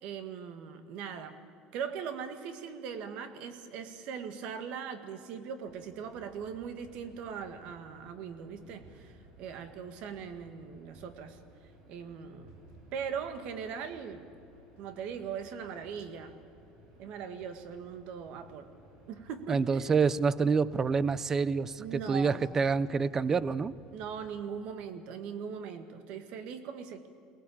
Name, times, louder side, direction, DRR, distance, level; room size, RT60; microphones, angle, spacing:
voice 1, 0.0-1.4 1.7-11.4 11.9-12.5 12.9-14.3 14.8-16.4 17.0-18.7 19.1-19.9 21.8-22.4 23.9-27.1, right 7 dB, 55° right, 1.8 m, -40 dB
sound 1, 5.7-24.2, right 2 dB, 70° right, 7.7 m, -57 dB
voice 2, 19.5-23.7, right 5 dB, 20° right, 0.5 m, -27 dB
23.0 x 18.5 x 8.7 m
cardioid pair, 155°, 2 cm